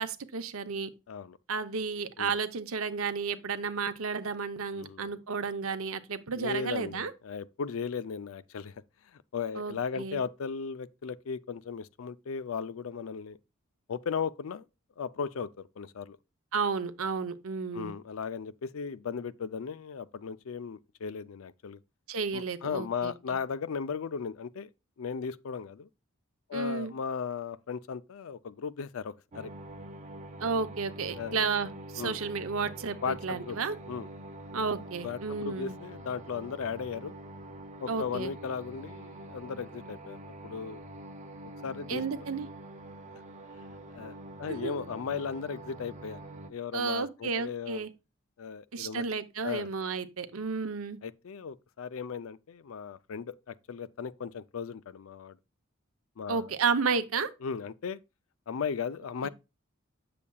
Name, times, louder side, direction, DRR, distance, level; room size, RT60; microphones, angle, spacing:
voice 1, 0.0-0.9 1.5-7.1 9.6-10.2 16.5-17.9 22.1-23.1 26.5-26.9 30.4-33.8 34.5-35.7 37.9-38.3 41.9-42.5 44.5-44.7 46.7-47.9 48.7-51.0 56.3-57.3, right 5 dB, 85° right, 0.7 m, -32 dB
voice 2, 1.1-1.4 2.2-2.3 4.7-5.1 6.3-8.8 9.1-13.4 13.9-14.7 15.0-16.2 17.7-21.8 22.3-24.7 25.0-25.9 26.5-29.5 31.2-31.4 32.0-32.2 33.0-33.6 33.9-34.1 35.0-37.2 37.8-40.2 40.4-40.8 41.6-42.2 43.9-46.2 46.5-47.9 48.4-49.0 49.4-49.7 51.0-55.4 56.2-56.5 57.4-58.0 58.5-59.3, left 6 dB, 75° left, 0.4 m, -36 dB
sound 1, 29.3-46.5, right 1 dB, 35° right, 0.7 m, -45 dB
8.4 x 6.9 x 2.3 m
head